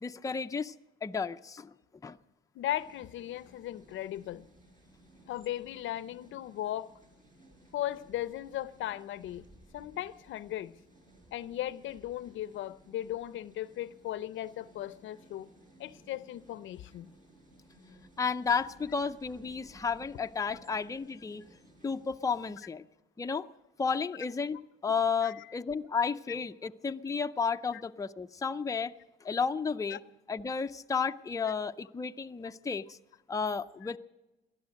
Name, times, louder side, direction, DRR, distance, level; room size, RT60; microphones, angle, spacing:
voice 1, 0.0-0.7 1.0-1.7 2.0-2.2 18.2-21.4 21.8-22.8 23.2-23.5 23.8-24.6 24.8-28.9 29.2-30.0 30.3-33.0 33.3-34.0, left 5 dB, 15° left, 0.5 m, -32 dB
voice 2, 2.5-4.5 5.3-6.9 7.7-9.4 9.7-10.7 11.3-15.5 15.8-17.1 25.2-25.3 27.7-27.8 29.9-30.0 31.4-31.5, left 13 dB, 75° left, 0.6 m, -37 dB
sound 1, 2.7-22.5, right 1 dB, 40° right, 6.1 m, -59 dB
18.5 x 12.0 x 6.4 m
cardioid pair, 90°, 20 cm